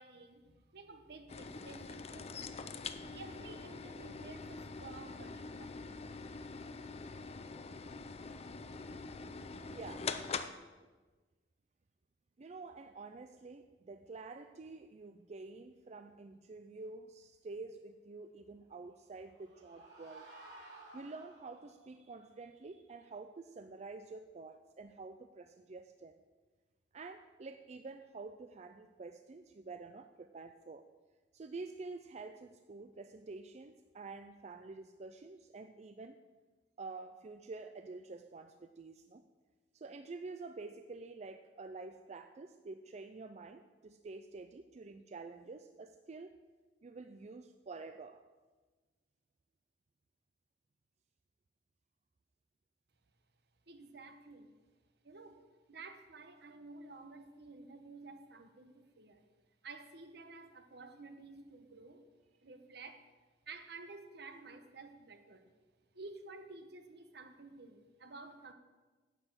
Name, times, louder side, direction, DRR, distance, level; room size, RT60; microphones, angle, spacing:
voice 1, 0.0-2.3 2.9-6.1 53.7-54.6 55.0-59.3 59.6-62.1 62.4-63.1 63.4-65.5 65.9-68.5, right 3 dB, 65° right, 8 dB, 1.1 m, -52 dB
sound 1, 1.3-10.5, left 4 dB, 35° left, 0.6 m, -44 dB
voice 2, 9.7-10.1 12.4-20.3 20.9-26.2 26.9-30.9 31.3-36.2 36.8-39.2 39.7-46.4 46.8-48.2, right 3 dB, 40° right, 8 dB, 0.4 m, -48 dB
sound 2, 18.9-21.8, right 2 dB, 85° right, 4.1 m, -55 dB
10.0 x 6.7 x 7.9 m, 1.3 s
head